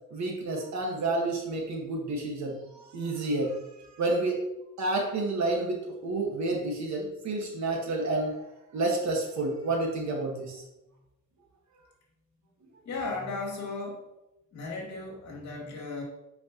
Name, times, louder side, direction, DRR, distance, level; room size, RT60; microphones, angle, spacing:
voice 1, 0.1-3.6 3.9-4.4 4.8-8.4 8.7-10.6, right 2 dB, 55° right, 0 dB, 1.7 m, -30 dB
voice 2, 12.8-14.0 14.5-16.0, left 3 dB, 55° left, -2 dB, 2.5 m, -35 dB
8.2 x 5.1 x 3.0 m, 0.90 s
cardioid pair, 150°, 33 cm